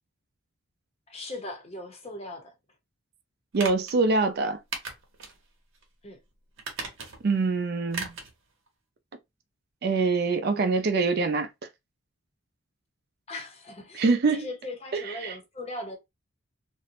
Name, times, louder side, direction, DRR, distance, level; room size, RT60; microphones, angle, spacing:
voice 1, 1.1-2.5 6.0-6.2 13.3-16.0, left 2 dB, 30° left, 0.6 m, -39 dB
voice 2, 3.5-4.6 7.2-8.1 9.8-11.5 13.9-14.5 14.9-15.3, right 4 dB, 50° right, 0.4 m, -24 dB
sound 1, 3.5-4.0 4.7-5.4 5.7-5.8 6.6-7.3 7.9-8.3 8.7-8.8, right 4 dB, 70° right, 0.8 m, -36 dB
2.5 x 2.0 x 2.8 m
head